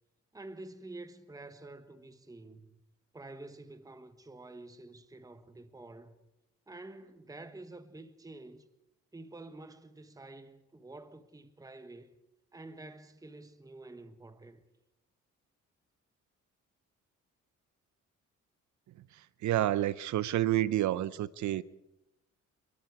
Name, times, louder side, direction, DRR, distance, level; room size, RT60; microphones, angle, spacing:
voice 1, 0.3-2.8 3.1-6.2 6.7-8.7 9.1-12.2 12.5-14.6, right 2 dB, 10° right, 1.3 m, -49 dB
voice 2, 19.4-21.6, right 13 dB, 70° right, 0.7 m, -29 dB
25.5 x 22.5 x 4.8 m
cardioid pair, 90°, 30 cm